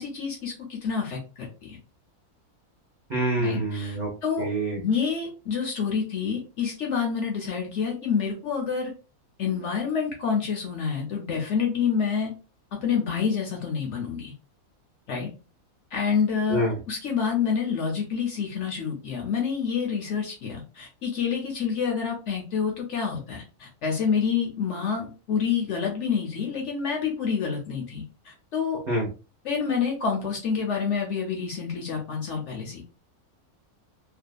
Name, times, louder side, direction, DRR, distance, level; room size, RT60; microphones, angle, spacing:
voice 1, 0.0-1.8 3.4-4.5 4.8-8.9 9.4-12.3 12.7-14.3 15.1-15.3 15.9-28.8 29.4-32.9, left 6 dB, 65° left, 1 dB, 0.8 m, -28 dB
voice 2, 3.1-4.1 4.4-4.8 16.5-16.7 28.9-29.1, right 1 dB, 45° right, -2 dB, 0.6 m, -26 dB
2.6 x 2.4 x 2.2 m, 0.33 s
omnidirectional pair, 1.6 m